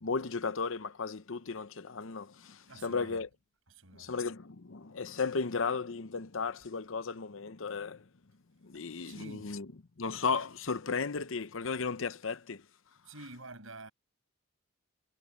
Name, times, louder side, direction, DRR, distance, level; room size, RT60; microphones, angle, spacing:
voice 1, 0.0-3.3 3.9-8.0 8.6-9.6 10.0-12.6, left 4 dB, 70° left, 0.8 m, -35 dB
voice 2, 2.6-3.2 3.7-4.2 8.7-9.5 13.0-13.9, right 2 dB, 75° right, 6.0 m, -49 dB
head